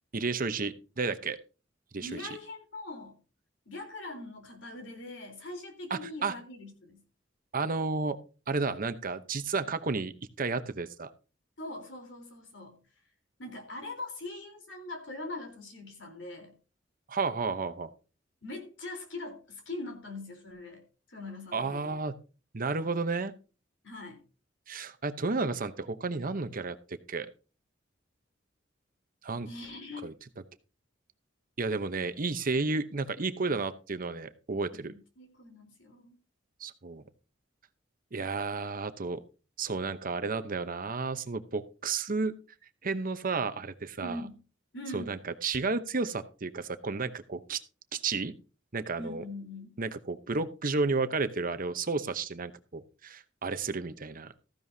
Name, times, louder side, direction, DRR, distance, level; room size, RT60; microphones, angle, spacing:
voice 1, 0.1-1.4 1.9-2.2 5.9-6.3 7.5-8.2 8.5-10.1 10.4-11.1 17.1-17.9 21.5-22.1 22.5-23.3 24.7-26.8 27.1-27.3 29.2-29.5 30.0-30.1 31.6-34.9 36.6-37.0 38.1-39.2 39.6-42.3 42.8-44.3 44.9-47.6 47.9-48.3 48.7-49.2 49.8-54.3, right 4 dB, 50° right, 11 dB, 0.9 m, -32 dB
voice 2, 2.0-3.2 3.7-7.0 11.6-12.8 13.4-16.6 18.4-22.0 23.8-24.2 29.4-30.1 34.7-36.2 44.0-44.4 44.7-45.1 49.0-49.7, left 2 dB, 70° left, 4 dB, 3.9 m, -42 dB
14.5 x 11.0 x 2.8 m, 0.34 s
head